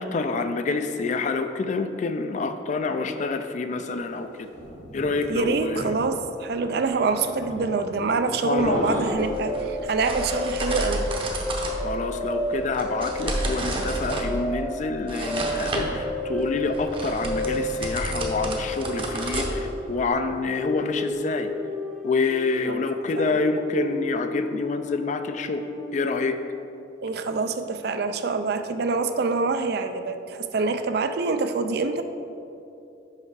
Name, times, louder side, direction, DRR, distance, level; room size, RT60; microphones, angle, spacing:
voice 1, 0.0-4.5 4.9-5.9 7.7-7.8 8.4-8.9 11.8-21.5 22.0-25.6 25.9-26.4, left 3 dB, 40° left, 8 dB, 0.3 m, -27 dB
sound 1, 4.1-10.0, equal, 75° left, 1.6 m, -36 dB
voice 2, 5.3-11.1 22.7-22.8 23.2-23.4 27.0-32.0, right 4 dB, 60° right, 9 dB, 0.4 m, -26 dB
sound 2, 8.9-20.1, right 1 dB, 30° right, 0.7 m, -31 dB
sound 3, 9.2-26.6, left 1 dB, 5° left, 0.8 m, -32 dB
5.7 x 5.3 x 4.7 m, 2.7 s
head